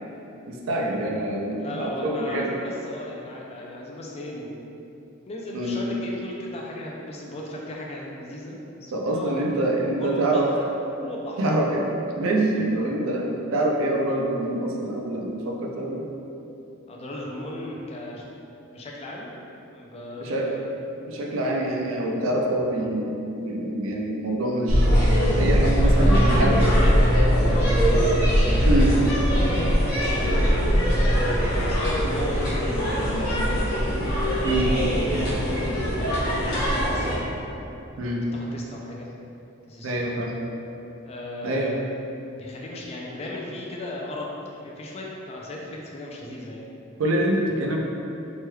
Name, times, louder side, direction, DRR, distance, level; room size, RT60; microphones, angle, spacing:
voice 1, 0.5-2.6 5.5-5.8 8.9-10.5 11.4-11.9 12.2-16.1 20.2-20.5 21.1-25.0 25.4-26.6 28.7-29.0 34.4-34.8 38.0-38.2 39.8-40.3 41.4-41.7 47.0-47.8, right 1 dB, 75° right, -1 dB, 0.4 m, -25 dB
voice 2, 1.6-4.7 5.3-9.6 10.0-10.7 11.0-11.4 16.9-18.3 18.6-19.3 19.7-20.8 25.7-27.8 28.5-29.0 29.3-29.9 30.5-33.7 34.9-37.1 38.0-39.1 39.7-40.1 41.1-41.8 42.2-44.3 44.6-46.7, left 1 dB, 30° left, -2 dB, 0.3 m, -36 dB
sound 1, 24.7-37.2, equal, 55° left, 0.8 m, -21 dB
3.1 x 3.0 x 2.3 m, 2.8 s
head